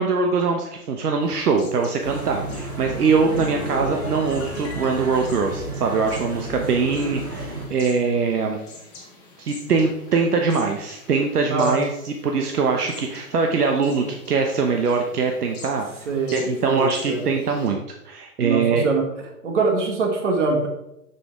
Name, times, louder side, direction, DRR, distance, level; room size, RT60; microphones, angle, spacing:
voice 1, 0.0-8.6 9.4-15.9 16.3-18.9, right 4 dB, 70° right, 3 dB, 1.1 m, -22 dB
sound 1, 1.2-17.7, left 3 dB, 10° left, 1.1 m, -46 dB
sound 2, 2.0-7.7, right 2 dB, 15° right, 0.7 m, -32 dB
sound 3, 2.7-7.3 7.6-7.9, left 5 dB, 45° left, 1.7 m, -39 dB
voice 2, 11.5-11.8 16.1-17.2 18.4-19.1 19.4-20.7, right 3 dB, 50° right, 3 dB, 1.8 m, -23 dB
7.0 x 6.9 x 3.6 m, 0.85 s
hypercardioid pair, 165°, 47 cm